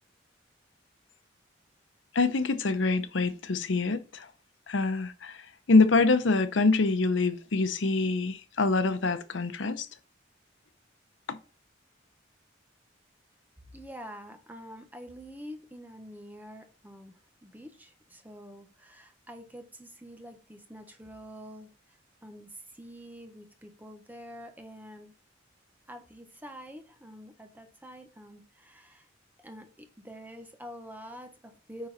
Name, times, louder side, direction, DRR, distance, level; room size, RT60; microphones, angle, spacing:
voice 1, 2.1-4.3 4.7-9.9 11.3-11.4, left 3 dB, 85° left, 0.7 m, -25 dB
voice 2, 13.7-17.1 17.4-25.1 25.9-29.1 29.4-31.9, equal, 10° right, 1.0 m, -46 dB
9.2 x 3.9 x 4.1 m
head